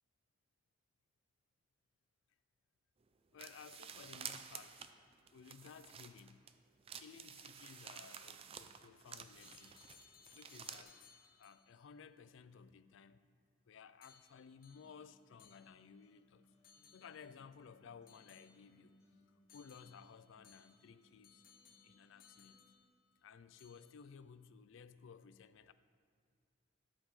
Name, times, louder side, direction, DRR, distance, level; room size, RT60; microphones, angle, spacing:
voice 1, 3.3-4.9 5.3-6.4 7.0-9.8 10.3-11.1 11.4-13.2 13.7-16.5 16.9-19.0 19.5-21.4 21.8-22.6 23.2-25.7, left 6 dB, 65° left, 13 dB, 0.4 m, -57 dB
sound 1, 3.4-6.5 6.9-10.8, right 7 dB, 30° right, 0.3 m, -51 dB
sound 2, 9.4-11.8 14.0-16.1 16.6-17.4 18.1-19.0 19.5-23.2 23.6-24.1, left 7 dB, 45° left, 0.8 m, -65 dB
Acoustic guitar, 14.7-22.7, left 1 dB, 15° left, 2.2 m, -71 dB
11.5 x 8.2 x 3.2 m, 2.2 s
head